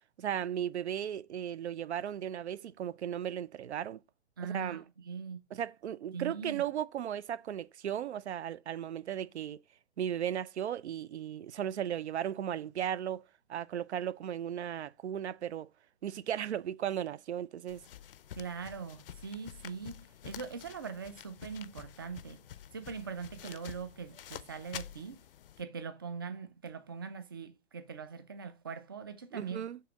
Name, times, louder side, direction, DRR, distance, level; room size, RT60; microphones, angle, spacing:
voice 1, 0.2-4.0 4.4-4.8 5.5-9.6 10.0-15.7 16.0-17.8 29.3-29.8, right 10 dB, 75° right, 0.6 m, -36 dB
voice 2, 4.4-5.4 6.1-6.6 18.3-22.4 22.7-25.2 25.6-29.7, right 5 dB, 20° right, 0.3 m, -42 dB
sound 1, 17.7-25.6, left 10 dB, 55° left, 0.5 m, -49 dB
6.7 x 2.9 x 4.9 m
hypercardioid pair, 150°, 34 cm